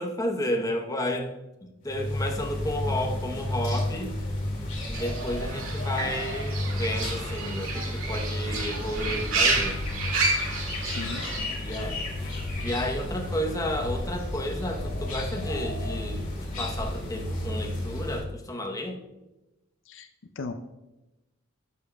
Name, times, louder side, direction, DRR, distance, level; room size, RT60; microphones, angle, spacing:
voice 1, 0.0-1.3 1.6-4.1 4.9-9.8 11.6-12.0 12.6-19.0, left 1 dB, 15° left, 2 dB, 0.8 m, -32 dB
sound 1, 1.9-18.2, left 1 dB, 40° left, 2.3 m, -32 dB
Fowl / Bird, 4.9-11.4, right 3 dB, 80° right, 2.0 m, -30 dB
sound 2, 6.0-9.9 10.5-10.6, right 2 dB, 60° right, 2.1 m, -43 dB
voice 2, 10.8-11.6 19.9-20.1 20.4-20.5, left 3 dB, 65° left, 8 dB, 0.5 m, -37 dB
12.0 x 7.1 x 2.2 m, 1.0 s
head